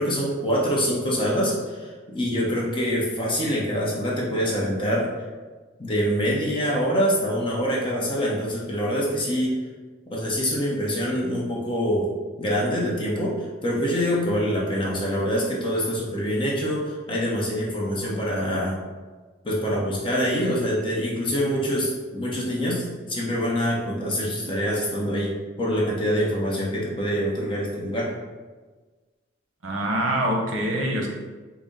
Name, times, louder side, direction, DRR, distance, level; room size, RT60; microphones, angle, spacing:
voice 1, 0.0-5.1 5.8-9.6 10.1-12.1 12.4-18.8 19.4-25.3 25.6-28.1, equal, 25° left, -4 dB, 0.7 m, -25 dB
voice 2, 29.6-31.1, right 1 dB, 85° right, 0 dB, 0.7 m, -24 dB
3.9 x 2.0 x 3.6 m, 1.3 s
head